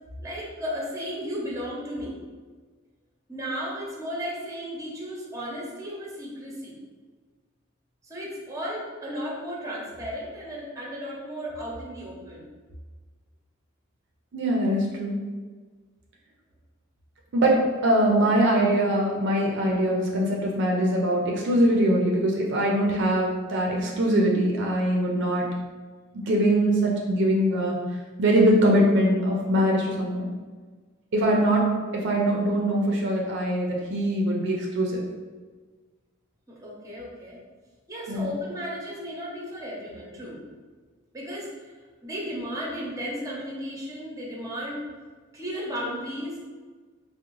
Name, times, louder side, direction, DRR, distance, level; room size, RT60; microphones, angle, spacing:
voice 1, 0.2-2.2 3.3-6.7 8.0-12.5 36.5-37.4 37.9-40.4 41.1-41.5 42.0-44.8 45.3-46.4, equal, 15° right, -4 dB, 0.7 m, -34 dB
voice 2, 14.3-15.2 17.3-25.5 26.3-27.8 28.2-30.2 31.1-31.7 31.9-35.0 38.1-38.3, right 1 dB, 60° right, -1 dB, 0.4 m, -22 dB
3.5 x 2.0 x 3.0 m, 1.4 s
head